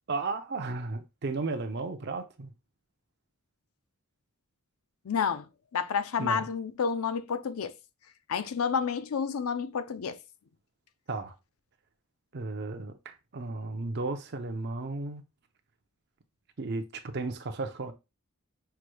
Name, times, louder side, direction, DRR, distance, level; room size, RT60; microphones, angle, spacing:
voice 1, 0.1-2.5 6.2-6.5 11.1-11.3 12.3-15.2 16.6-17.9, right 3 dB, 50° right, 0.6 m, -34 dB
voice 2, 5.0-5.5 5.7-7.7 8.3-10.2, left 6 dB, 75° left, 0.5 m, -30 dB
5.8 x 3.2 x 2.2 m
head